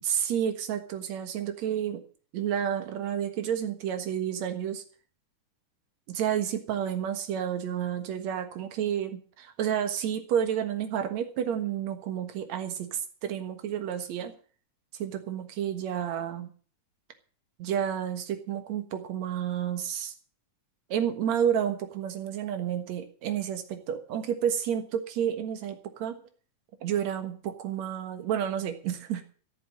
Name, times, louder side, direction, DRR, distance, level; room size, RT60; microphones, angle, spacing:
voice 1, 0.0-2.0 2.3-4.8 6.1-14.3 15.0-16.5 17.6-20.1 20.9-26.2 26.8-29.2, right 9 dB, 65° right, 7 dB, 2.6 m, -30 dB
14.0 x 7.2 x 8.6 m, 0.43 s
omnidirectional pair, 3.6 m